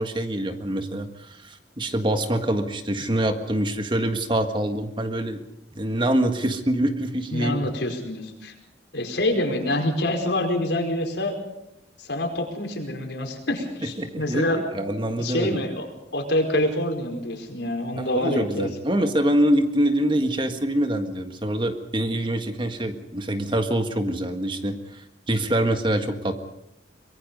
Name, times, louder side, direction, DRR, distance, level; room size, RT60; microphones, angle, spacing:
voice 1, 0.0-5.4 5.8-7.7 14.0-15.6 18.0-26.3, right 1 dB, 30° right, 7 dB, 1.7 m, -25 dB
voice 2, 7.3-8.5 8.9-11.4 12.0-14.6 15.2-15.9 16.1-19.0, left 1 dB, 80° left, 3 dB, 4.8 m, -26 dB
24.5 x 22.0 x 5.4 m, 0.85 s
head